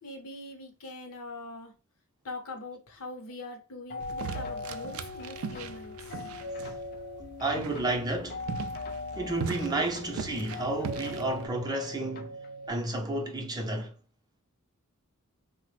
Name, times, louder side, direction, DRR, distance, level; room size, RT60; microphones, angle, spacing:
voice 1, 0.0-1.7 2.2-6.3, left 2 dB, 65° left, 0.8 m, -42 dB
sound 1, 3.9-12.7, left 3 dB, 45° left, 0.4 m, -40 dB
sound 2, 4.0-11.5, right 7 dB, 65° right, 0.3 m, -40 dB
voice 2, 7.4-8.4 9.2-12.3 12.7-13.9, right 2 dB, 20° right, 0.5 m, -31 dB
3.4 x 2.0 x 3.2 m
head